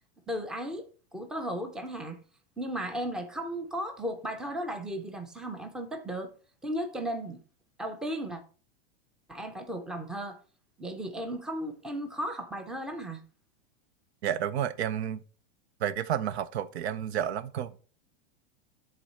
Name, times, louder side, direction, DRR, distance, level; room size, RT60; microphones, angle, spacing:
voice 1, 0.3-2.2 2.6-6.3 6.6-7.4 7.8-8.4 9.3-10.4 10.8-13.2, right 1 dB, ahead, 0.5 m, -35 dB
voice 2, 14.2-15.2 15.8-17.7, right 9 dB, 85° right, 0.7 m, -31 dB
10.0 x 3.9 x 4.2 m
supercardioid pair, 155°, 32 cm